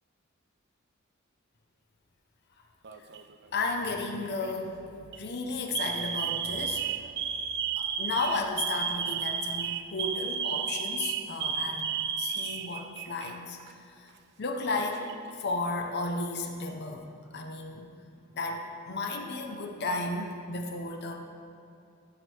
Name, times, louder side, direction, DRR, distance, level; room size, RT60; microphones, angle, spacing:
Alarm, 2.8-3.4 4.2-4.5 5.0-5.2 5.7-13.3 13.6-13.7 14.6-15.3, right 7 dB, 55° right, 0.5 m, -33 dB
voice 1, 3.5-4.8 5.2-7.1 7.7-11.9 12.2-13.7 14.4-15.0 15.4-17.0 17.3-17.9 18.3-21.2, left 3 dB, 55° left, 3 dB, 0.9 m, -33 dB
15.5 x 5.3 x 4.6 m, 2.6 s
head